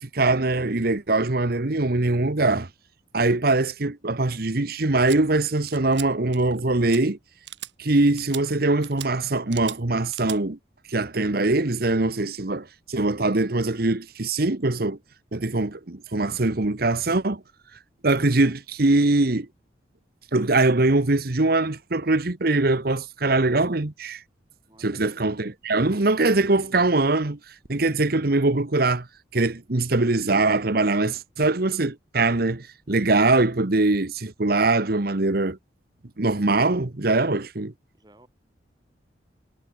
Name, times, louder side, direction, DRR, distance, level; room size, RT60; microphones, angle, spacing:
voice 1, 0.0-2.7 3.1-7.2 7.8-10.6 10.9-15.0 15.3-17.4 18.0-19.5 20.3-24.2 24.8-27.4 27.7-29.1 29.3-35.6 36.2-37.7, right 2 dB, 55° right, 1.2 m, -22 dB
sound 1, 5.1-5.2 5.7-6.1 6.3-6.6 6.9-7.0 7.5-7.7 8.2-8.4 8.8-9.1 9.5-9.8 10.1-10.4, right 13 dB, 75° right, 1.9 m, -38 dB
voice 2, 24.7-25.0 37.9-38.3, right 1 dB, 20° right, 6.0 m, -54 dB
head